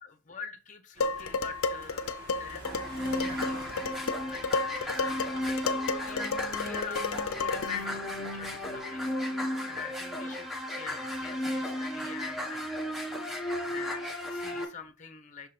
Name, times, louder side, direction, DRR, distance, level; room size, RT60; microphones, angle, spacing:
voice 1, 0.0-3.7 4.0-10.5 10.7-12.6 13.1-15.5, left 5 dB, 35° left, 7 dB, 0.9 m, -45 dB
sound 1, 0.9-8.8, right 2 dB, 50° right, 1.4 m, -49 dB
Dishes pots and pans, 1.0-7.9, left 4 dB, 75° left, 0.6 m, -32 dB
sound 2, 2.6-14.6, left 1 dB, ahead, 1.3 m, -34 dB
6.1 x 3.7 x 4.2 m, 0.30 s
head